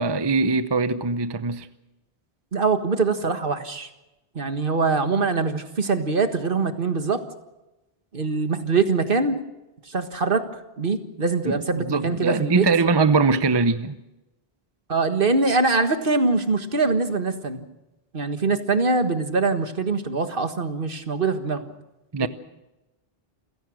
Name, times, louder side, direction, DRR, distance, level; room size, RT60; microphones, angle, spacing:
voice 1, 0.0-1.7 11.5-14.0 22.1-22.3, right 4 dB, 25° right, 0.7 m, -22 dB
voice 2, 2.5-3.9 4.4-7.2 8.1-9.4 9.9-10.5 10.8-12.6 14.9-17.7 18.1-21.6 22.2-22.3, right 4 dB, 60° right, 1.8 m, -23 dB
28.5 x 17.0 x 6.4 m
omnidirectional pair, 1.0 m